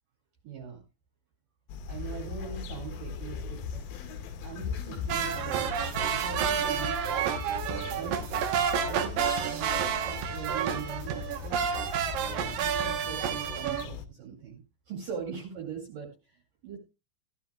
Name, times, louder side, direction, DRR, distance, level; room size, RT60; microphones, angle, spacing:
voice 1, 0.4-0.8 1.9-3.8 4.4-7.0 7.9-8.3 8.8-11.2 12.1-14.6 14.9-16.4 16.6-16.8, right 7 dB, 50° right, 1 dB, 3.3 m, -41 dB
sound 1, 1.7-14.1, left 7 dB, 90° left, 3.7 m, -43 dB
sound 2, 1.9-12.9, left 6 dB, 65° left, 2.6 m, -41 dB
sound 3, 5.1-13.9, right 8 dB, 75° right, 2.0 m, -30 dB
16.0 x 13.0 x 2.3 m, 0.27 s
omnidirectional pair, 5.6 m